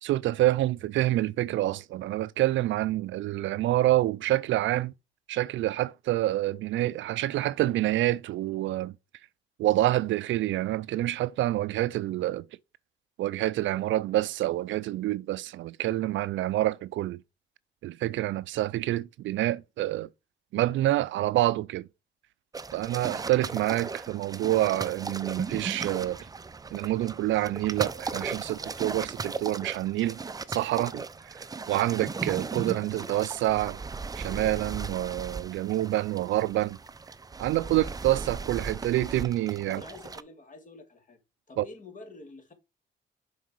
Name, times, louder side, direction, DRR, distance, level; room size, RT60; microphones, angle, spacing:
voice 1, 0.0-4.9 5.3-8.9 9.6-12.5 13.2-17.2 17.8-20.1 20.5-21.9 22.7-26.2 26.7-30.2 30.5-31.3 31.7-33.8 34.2-36.8 37.4-39.8 41.6-41.7, right 15 dB, 75° right, 0.4 m, -27 dB
sound 1, 22.5-40.2, right 4 dB, 20° right, 0.5 m, -37 dB
voice 2, 39.7-41.2 41.5-42.5, left 3 dB, 40° left, 2.2 m, -47 dB
6.5 x 4.7 x 4.6 m
cardioid pair, 90°, 20 cm